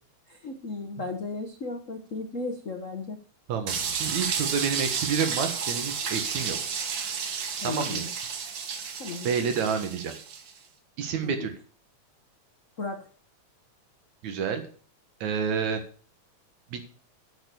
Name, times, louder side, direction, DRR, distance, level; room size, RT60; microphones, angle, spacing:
voice 1, 0.3-3.2 7.6-8.0 9.0-9.3 11.2-11.5 12.8-13.1, left 3 dB, 85° left, 4 dB, 0.7 m, -35 dB
voice 2, 3.5-6.6 7.6-8.2 9.2-10.1 11.0-11.6 14.2-14.6 15.2-15.8 16.7-16.8, right 6 dB, 75° right, 7 dB, 2.9 m, -29 dB
sound 1, 3.7-10.5, right 6 dB, 55° right, 1.5 m, -32 dB
9.6 x 7.1 x 7.0 m, 0.43 s
omnidirectional pair, 3.3 m